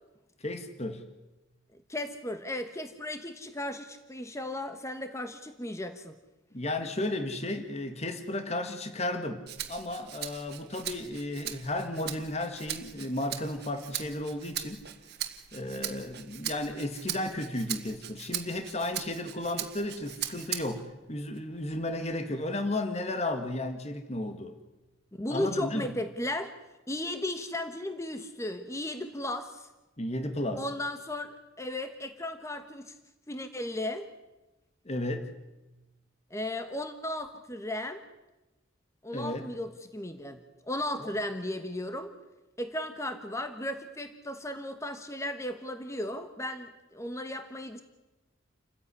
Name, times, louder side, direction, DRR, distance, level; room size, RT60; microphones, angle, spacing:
voice 1, 0.4-1.1 6.5-14.9 15.5-24.6 25.3-25.9 30.0-30.7 34.9-35.3 39.1-39.5 41.0-41.1, left 1 dB, 35° left, 8 dB, 1.7 m, -34 dB
voice 2, 1.7-6.2 25.2-26.5 26.9-29.7 30.5-33.0 33.3-34.1 36.3-38.0 39.0-42.1 42.6-47.8, left 1 dB, 15° left, 8 dB, 1.2 m, -35 dB
Rattle (instrument), 9.5-20.9 21.4-22.5, right 11 dB, 55° right, 1.9 m, -40 dB
29.0 x 15.0 x 9.9 m, 1.1 s
head